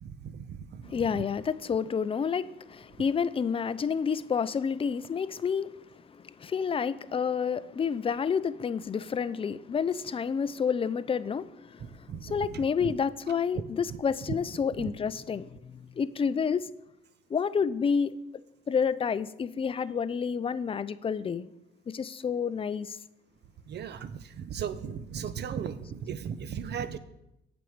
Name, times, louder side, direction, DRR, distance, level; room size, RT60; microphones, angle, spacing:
voice 1, 0.0-1.2 11.8-12.9 13.5-13.6 13.9-14.0 14.3-14.4 14.8-14.9 23.7-27.0, right 7 dB, 60° right, 0.7 m, -37 dB
voice 2, 0.9-5.7 6.1-11.9 12.2-16.7 17.3-18.1 18.7-21.5 21.9-23.0, left 6 dB, 30° left, 0.4 m, -29 dB
7.6 x 5.2 x 7.1 m
cardioid pair, 90°, 20 cm